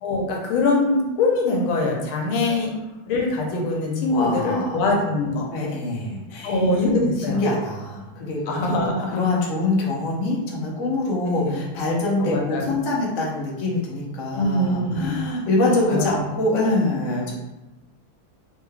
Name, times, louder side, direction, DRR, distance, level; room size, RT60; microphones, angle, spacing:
voice 1, 0.0-2.7 3.1-5.4 6.4-7.4 8.5-9.3 11.3-11.6 12.2-12.8 14.3-15.1 15.7-16.1, left 2 dB, 85° left, 0 dB, 1.5 m, -23 dB
voice 2, 4.1-4.8 5.5-6.7 7.3-8.8 9.1-17.3, left 2 dB, 60° left, -4 dB, 0.8 m, -24 dB
3.6 x 3.1 x 2.3 m, 1.0 s
omnidirectional pair, 2.3 m